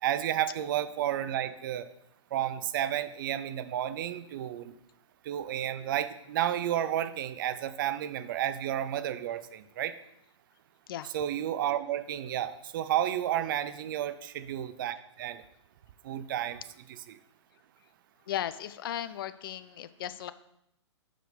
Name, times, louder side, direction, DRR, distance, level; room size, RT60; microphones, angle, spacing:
voice 1, 0.0-1.9 2.3-4.7 5.2-9.9 11.1-15.4 16.0-16.6 16.9-17.2, right 11 dB, 45° right, 12 dB, 0.5 m, -31 dB
voice 2, 18.3-20.3, left 11 dB, 45° left, 13 dB, 0.4 m, -36 dB
6.2 x 5.0 x 5.0 m, 0.79 s
hypercardioid pair, 130°, 16 cm